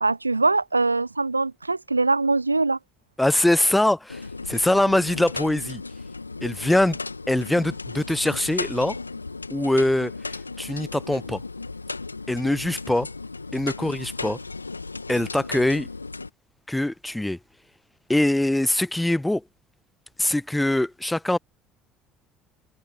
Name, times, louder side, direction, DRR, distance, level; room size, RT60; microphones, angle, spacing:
voice 1, 0.0-2.8, right 3 dB, 85° right, 0.3 m, -22 dB
voice 2, 3.2-4.2 4.5-5.8 6.4-7.0 7.3-9.0 9.5-10.1 10.6-11.4 12.3-13.1 13.5-14.4 15.1-15.9 16.7-17.4 18.1-19.4 20.2-21.4, left 1 dB, 5° left, 0.8 m, -23 dB
sound 1, 4.1-16.3, left 3 dB, 85° left, 2.3 m, -35 dB
figure-of-eight pair, 60°, 0 cm